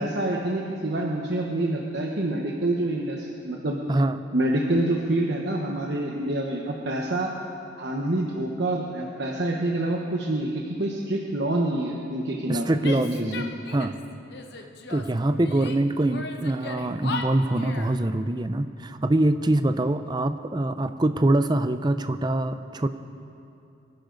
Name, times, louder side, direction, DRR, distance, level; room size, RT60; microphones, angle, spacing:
voice 1, 0.0-3.8 4.3-7.3 7.8-12.7 13.1-13.4, right 1 dB, 60° right, -1 dB, 1.1 m, -27 dB
voice 2, 3.9-4.2 12.5-13.5 13.7-14.0 14.9-22.9, right 1 dB, 20° right, 10 dB, 0.5 m, -24 dB
Female speech woman speaking / Yell, 12.8-14.0 14.3-15.8 16.1-18.0, left 4 dB, 55° left, 1.0 m, -36 dB
25.0 x 11.5 x 4.0 m, 2.6 s
head